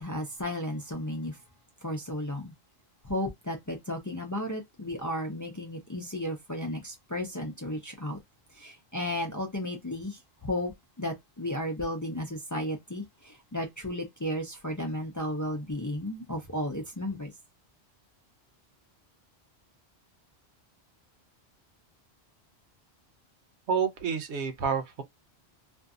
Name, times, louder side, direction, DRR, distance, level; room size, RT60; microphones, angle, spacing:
voice 1, 0.0-1.4 1.8-2.5 3.0-8.2 8.5-10.7 11.0-17.3, left 1 dB, 25° left, 0.4 m, -34 dB
voice 2, 23.7-25.0, right 6 dB, 85° right, 1.0 m, -29 dB
2.6 x 2.5 x 2.3 m
omnidirectional pair, 1.1 m